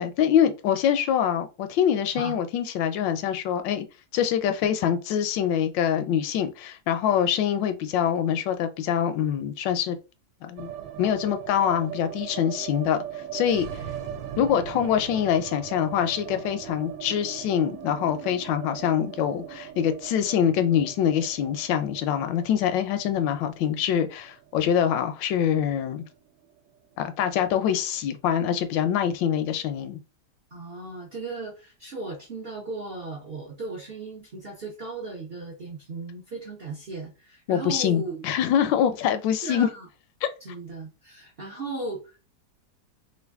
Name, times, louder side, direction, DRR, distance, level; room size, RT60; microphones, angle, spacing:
voice 1, 0.0-3.9 4.1-10.0 10.4-10.7 11.0-13.0 13.3-13.8 14.4-26.0 27.0-30.0 37.5-39.7 40.2-40.3, left 9 dB, 80° left, 1.2 m, -24 dB
sound 1, 10.6-26.7 26.9-27.0 27.3-28.0, right 10 dB, 80° right, 1.3 m, -39 dB
voice 2, 30.5-38.2 39.4-39.9 40.4-42.2, right 3 dB, 55° right, 0.6 m, -36 dB
3.2 x 2.4 x 3.4 m
omnidirectional pair, 2.0 m